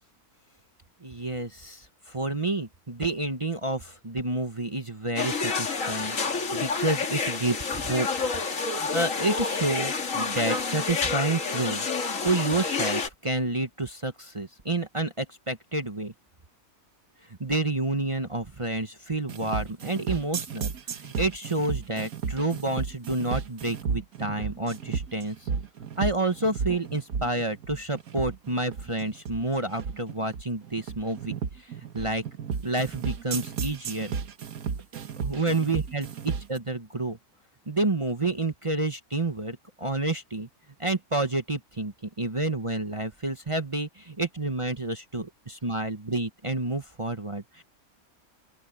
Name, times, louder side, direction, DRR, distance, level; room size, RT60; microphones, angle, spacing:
voice 1, 1.0-6.2 6.5-8.1 8.8-11.9 12.2-16.1 17.4-25.5 26.0-32.2 32.6-34.1 35.2-37.2 37.7-40.5 40.8-47.6, right 2 dB, 25° right, 1.1 m, -29 dB
sound 1, 5.2-13.1, left 4 dB, 60° left, 2.2 m, -29 dB
sound 2, 19.3-36.6, right 6 dB, 75° right, 1.7 m, -33 dB
open air
omnidirectional pair, 1.5 m